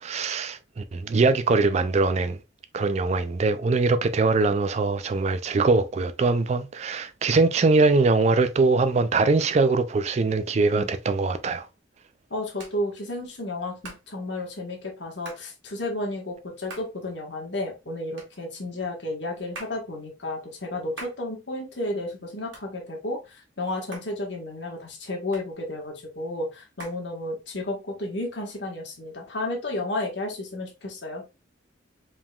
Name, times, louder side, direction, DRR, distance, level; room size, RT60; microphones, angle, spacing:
voice 1, 0.0-2.4 2.7-11.7, right 3 dB, 35° right, 0.3 m, -22 dB
Hands, 11.8-27.7, right 3 dB, 85° right, 1.9 m, -49 dB
voice 2, 12.3-31.2, left 1 dB, 65° left, 1.5 m, -32 dB
4.9 x 3.6 x 2.3 m
head